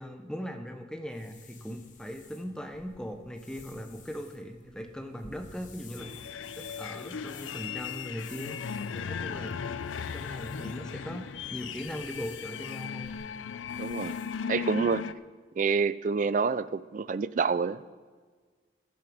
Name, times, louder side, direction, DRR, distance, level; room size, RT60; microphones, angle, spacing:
voice 1, 0.0-8.6 8.9-9.6 10.1-13.2 16.4-16.5, equal, 5° left, 5 dB, 0.8 m, -40 dB
sound 1, 1.1-14.4, left 4 dB, 40° left, 1.2 m, -52 dB
sound 2, 6.0-15.1, left 7 dB, 85° left, 0.4 m, -37 dB
voice 2, 13.8-14.1 14.5-15.1 15.6-17.9, right 5 dB, 40° right, 16 dB, 0.3 m, -27 dB
14.5 x 10.5 x 5.0 m, 1.5 s
head